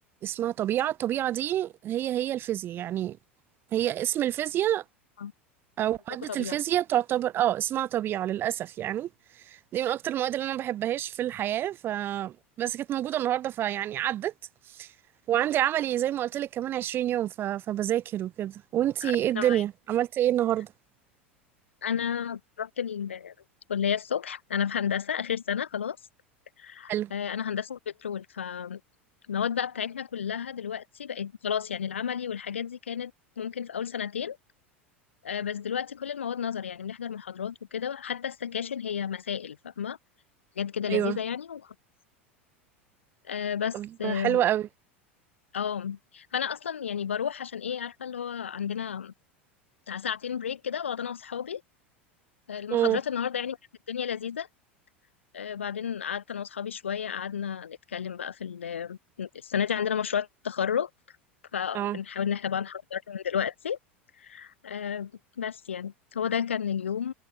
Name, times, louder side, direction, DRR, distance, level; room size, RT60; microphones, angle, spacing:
voice 1, 0.2-3.2 3.7-4.8 5.8-9.1 9.5-14.3 14.7-14.9 15.3-20.7 26.9-27.1 40.9-41.2 43.7-44.7 52.7-53.0 61.7-62.0, right 12 dB, 35° right, 0.7 m, -28 dB
voice 2, 19.0-19.6 21.8-23.3 23.7-26.0 26.6-28.8 29.3-33.1 33.4-34.4 35.2-40.0 40.6-41.7 43.3-44.4 45.5-49.1 49.9-51.6 52.5-53.6 53.9-54.5 55.3-60.9 61.5-63.8 64.2-65.1 65.4-67.1, left 8 dB, 70° left, 4.1 m, -32 dB
figure-of-eight pair, 80°, 7 cm